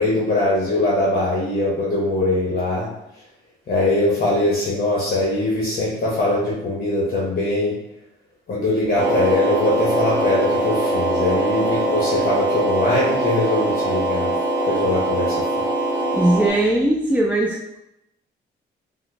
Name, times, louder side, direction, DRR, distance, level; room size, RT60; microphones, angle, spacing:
voice 1, 0.0-2.9 3.7-7.8 8.5-14.3 14.6-15.6, left 2 dB, 50° left, -5 dB, 0.8 m, -21 dB
sound 1, 8.9-16.5, right 1 dB, 30° left, 1.3 m, -22 dB
voice 2, 16.1-17.8, right 1 dB, 10° right, -2 dB, 0.3 m, -19 dB
3.3 x 2.0 x 3.1 m, 0.85 s
cardioid pair, 90°, 20 cm